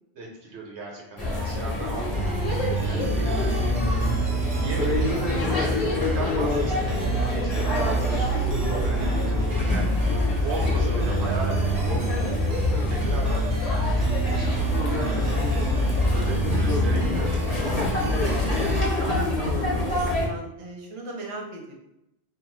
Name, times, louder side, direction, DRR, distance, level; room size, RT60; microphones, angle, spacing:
voice 1, 0.1-2.2 2.8-3.6 4.4-9.9 10.4-12.2 12.5-17.5 18.1-19.1, right 3 dB, 90° right, -1 dB, 1.1 m, -38 dB
sound 1, 1.2-20.3, left 2 dB, 40° left, 0.7 m, -26 dB
sound 2, 2.1-18.8, right 3 dB, 70° right, 0.8 m, -28 dB
voice 2, 9.9-10.5 18.2-21.7, right 1 dB, 40° right, -1 dB, 0.5 m, -37 dB
2.5 x 2.2 x 3.1 m, 0.85 s
omnidirectional pair, 1.1 m